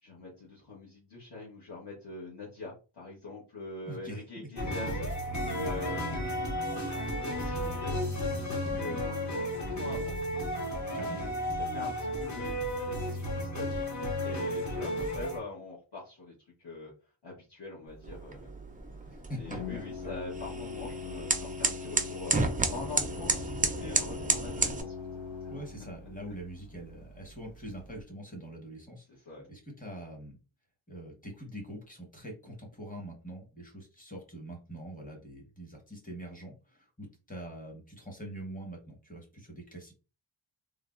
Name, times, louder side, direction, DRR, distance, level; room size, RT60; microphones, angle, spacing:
voice 1, 0.0-10.5 10.9-12.5 12.9-18.5 19.3-22.4 22.7-24.9 25.4-25.5 26.0-26.1 29.2-29.5, left 3 dB, 55° left, -6 dB, 1.1 m, -44 dB
voice 2, 3.8-4.2 4.6-4.7 8.7-9.0 10.9-11.3 19.1-19.8 25.5-29.0 29.5-30.4 30.9-39.9, right 1 dB, 15° left, 1 dB, 1.0 m, -44 dB
sound 1, 4.6-15.4, equal, 35° left, 0.8 m, -33 dB
Organ, 17.9-28.0, left 5 dB, 70° left, 0.8 m, -43 dB
sound 2, 18.0-24.8, right 3 dB, 20° right, 0.3 m, -32 dB
3.3 x 2.1 x 2.4 m, 0.32 s
wide cardioid pair, 100°, 49 cm